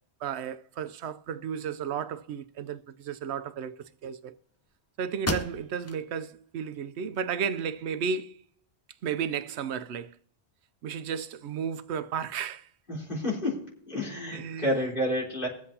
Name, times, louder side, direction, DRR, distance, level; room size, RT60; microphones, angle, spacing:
voice 1, 0.2-4.3 5.0-8.4 9.0-10.2 10.8-12.7 14.3-14.9, right 7 dB, 80° right, 0.9 m, -33 dB
sound 1, 4.7-4.8 5.2-6.0 6.5-6.6 7.1-8.0, left 2 dB, 20° left, 0.5 m, -35 dB
voice 2, 12.9-15.5, left 1 dB, 50° left, 3.9 m, -30 dB
23.0 x 7.7 x 2.8 m
omnidirectional pair, 1.1 m